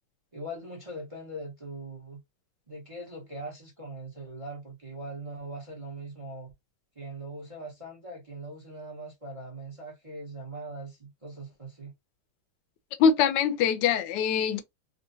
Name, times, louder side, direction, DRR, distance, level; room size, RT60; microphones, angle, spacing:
voice 1, 0.3-2.2 2.7-6.5 7.0-11.9, right 1 dB, 35° right, 0.5 m, -41 dB
voice 2, 13.0-14.6, left 7 dB, 70° left, 1.2 m, -23 dB
3.8 x 2.1 x 2.5 m
omnidirectional pair, 2.2 m